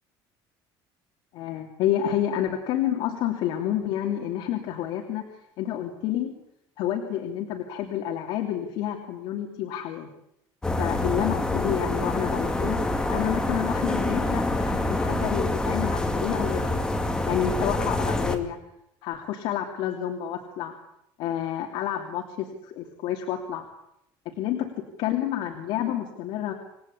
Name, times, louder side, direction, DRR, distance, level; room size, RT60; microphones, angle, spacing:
voice 1, 1.3-5.2 5.6-6.3 6.8-10.1 10.8-12.8 13.1-16.8 17.2-18.6 19.0-20.7 21.2-23.6 24.2-26.5, left 11 dB, 60° left, 3 dB, 2.9 m, -29 dB
sound 1, 10.6-18.4, left 2 dB, 10° left, 2.0 m, -26 dB
28.0 x 19.0 x 8.6 m, 0.81 s
cardioid pair, 180°, 9 cm